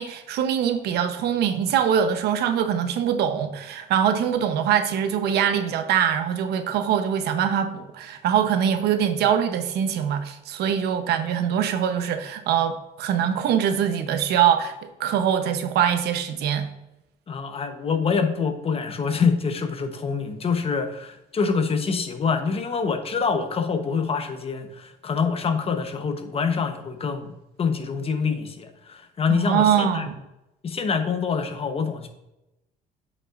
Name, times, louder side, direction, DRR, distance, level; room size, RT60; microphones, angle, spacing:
voice 1, 0.0-16.7 29.3-30.2, right 8 dB, 75° right, 0.8 m, -23 dB
voice 2, 17.3-27.3 27.6-30.1 30.6-32.1, left 5 dB, 35° left, 0.9 m, -25 dB
8.2 x 5.5 x 2.5 m
cardioid pair, 110°, 17 cm